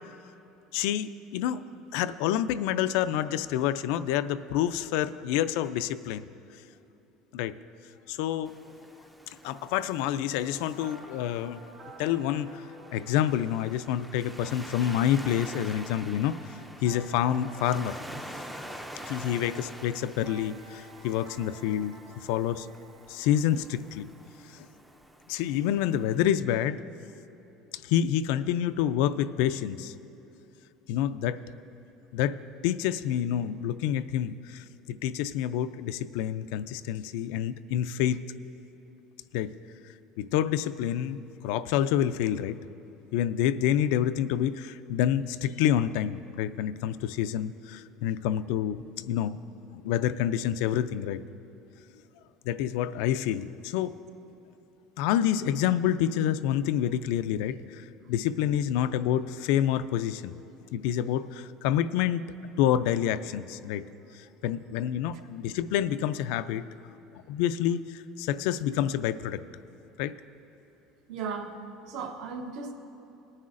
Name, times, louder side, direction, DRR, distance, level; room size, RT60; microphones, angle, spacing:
voice 1, 0.7-1.6 1.9-6.2 7.3-7.5 8.1-8.6 9.3-11.6 12.0-12.6 12.9-16.3 16.8-18.0 19.0-22.7 23.1-24.1 25.3-26.8 27.8-29.9 30.9-31.4 32.1-32.4 32.6-38.2 39.3-39.5 40.2-42.6 43.1-49.4 49.7-51.2 52.4-54.0 55.0-60.4 60.7-62.3 62.6-63.8 64.1-66.6 67.3-69.4 70.0-70.1, left 10 dB, 75° left, 12 dB, 0.3 m, -28 dB
Waves surf, 8.4-26.3, right 1 dB, 5° right, 0.4 m, -46 dB
sound 1, 9.4-25.1, right 3 dB, 45° right, 1.5 m, -53 dB
voice 2, 71.1-71.6 71.9-72.7, right 5 dB, 65° right, 5 dB, 0.9 m, -36 dB
20.0 x 9.6 x 2.5 m, 2.9 s
cardioid pair, 165°, 0 cm